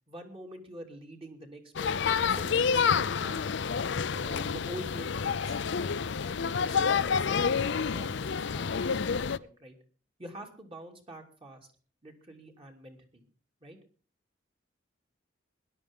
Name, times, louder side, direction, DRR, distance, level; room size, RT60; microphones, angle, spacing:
voice 1, 0.1-3.5 4.1-6.0 6.4-9.8 10.2-11.7 12.0-13.3 13.6-13.8, right 1 dB, 30° right, 2 dB, 2.8 m, -46 dB
sound 1, 1.8-9.4, left 6 dB, 65° left, 0.5 m, -28 dB
21.0 x 11.0 x 3.6 m, 0.41 s
head